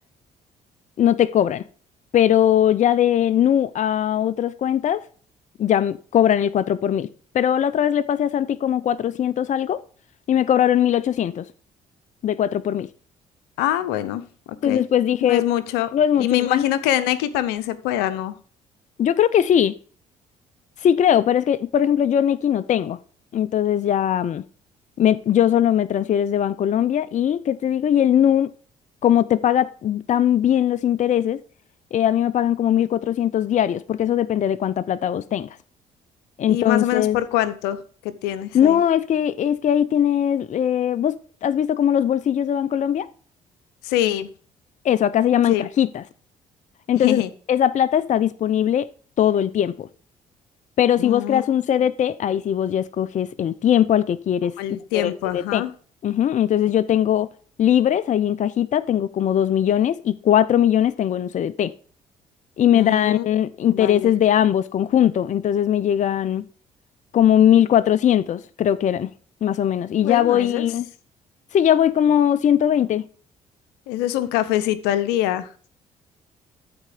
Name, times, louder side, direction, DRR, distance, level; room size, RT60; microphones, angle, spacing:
voice 1, 1.0-1.6 2.1-5.0 5.6-7.1 7.3-9.8 10.3-11.5 12.2-12.9 14.6-15.4 15.9-16.7 19.0-19.7 20.8-23.0 23.3-24.4 25.0-28.5 29.0-31.4 31.9-35.5 36.4-37.2 38.5-43.1 44.8-46.0 46.9-47.2 47.5-48.9 49.2-49.9 50.8-54.5 54.9-55.6 56.0-57.3 57.6-61.7 62.6-66.4 67.1-69.1 69.4-70.9 71.5-73.0, left 10 dB, 50° left, 0.5 m, -20 dB
voice 2, 13.6-14.2 14.6-14.8 15.2-15.9 16.2-18.4 36.5-38.8 43.8-44.3 45.5-45.7 47.0-47.3 51.0-51.4 54.6-55.7 62.7-63.3 63.7-64.1 70.0-70.7 73.9-75.5, left 13 dB, 80° left, 0.8 m, -24 dB
13.0 x 4.3 x 5.0 m
hypercardioid pair, 55°, 17 cm